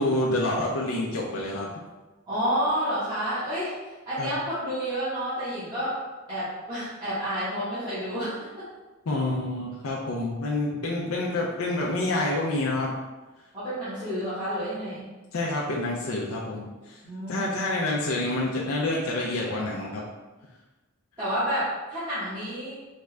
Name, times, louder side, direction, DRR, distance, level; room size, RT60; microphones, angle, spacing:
voice 1, 0.0-1.7 4.2-4.3 9.1-12.9 15.3-16.7 17.3-20.0, left 2 dB, 85° left, -3 dB, 0.6 m, -27 dB
voice 2, 2.3-3.7 4.0-6.0 6.3-8.6 13.5-15.1 17.0-17.4 21.2-22.8, equal, 20° right, -16 dB, 1.3 m, -29 dB
4.2 x 2.4 x 3.2 m, 1.2 s
head